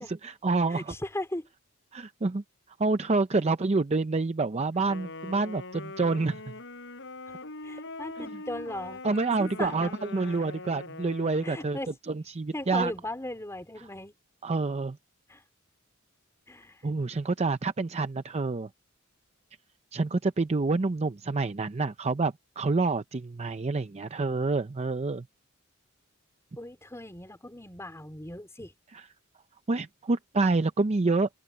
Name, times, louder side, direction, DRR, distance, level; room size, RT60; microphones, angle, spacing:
voice 1, 0.1-0.9 1.9-2.4 2.8-6.5 8.2-8.3 9.0-11.8 12.1-12.9 14.4-15.0 16.8-18.7 19.9-25.3 28.9-29.0 29.7-31.3, right 3 dB, 30° right, 0.5 m, -27 dB
voice 2, 0.7-1.5 7.3-7.4 7.6-9.0 9.4-10.5 11.4-11.9 12.5-14.1 15.3-15.4 16.5-16.8 26.6-28.7, left 1 dB, 15° left, 3.8 m, -38 dB
Wind instrument woodwind instrument, 4.9-11.8, left 2 dB, 60° left, 7.5 m, -42 dB
open air
head